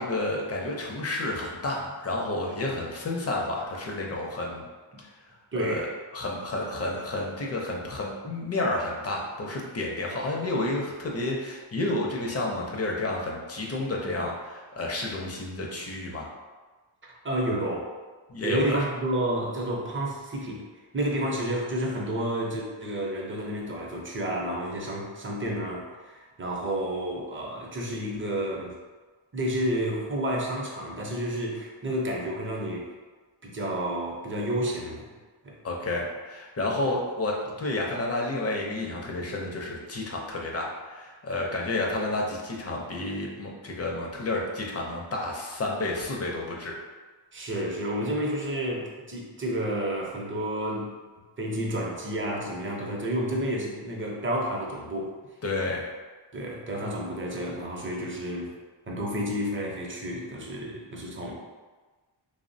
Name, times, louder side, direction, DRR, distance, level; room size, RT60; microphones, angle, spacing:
voice 1, 0.0-4.6 5.0-5.1 5.5-5.9 6.1-16.3 18.3-18.8 35.6-46.8 55.4-55.8, left 2 dB, 35° left, -1 dB, 0.5 m, -30 dB
voice 2, 5.5-5.9 17.0-17.9 18.4-20.6 20.9-28.7 29.3-32.9 33.4-35.1 35.4-35.6 36.6-36.9 47.3-50.9 51.4-55.1 56.3-58.5 58.9-61.3, right 1 dB, 25° right, -2 dB, 0.5 m, -30 dB
2.9 x 2.0 x 2.6 m, 1.3 s
cardioid pair, 85°, 46 cm